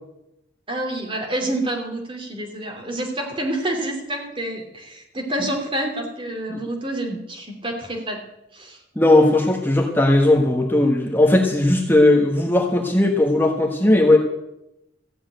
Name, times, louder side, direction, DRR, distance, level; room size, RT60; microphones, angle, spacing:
voice 1, 0.7-8.2 8.5-8.8, right 1 dB, 30° right, 2 dB, 2.9 m, -28 dB
voice 2, 8.9-14.2, left 1 dB, 10° left, 1 dB, 1.3 m, -17 dB
15.0 x 7.6 x 9.1 m, 0.88 s
head